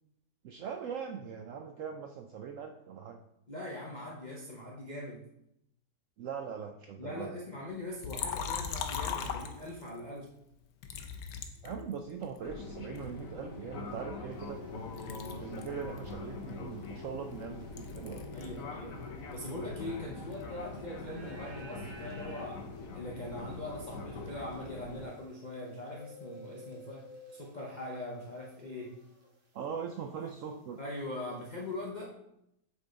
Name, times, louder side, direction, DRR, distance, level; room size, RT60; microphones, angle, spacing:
voice 1, 0.4-3.2 6.2-7.4 11.6-14.6 15.4-18.3 29.5-30.8, right 7 dB, 75° right, 4 dB, 0.7 m, -41 dB
voice 2, 3.5-5.2 7.0-10.3 18.3-19.0 19.3-29.0 30.8-32.1, left 1 dB, 40° left, -4 dB, 0.7 m, -41 dB
Liquid, 8.0-10.0 10.8-12.4 13.0-14.7 15.0-18.6 18.9-20.6, left 7 dB, 85° left, 1.3 m, -40 dB
Fixed-wing aircraft airplane, 12.4-25.1, left 3 dB, 60° left, 1.2 m, -43 dB
sound 1, 14.3-29.6 29.9-31.8, equal, 35° right, 1.2 m, -57 dB
8.1 x 3.6 x 3.9 m, 0.79 s
omnidirectional pair, 1.8 m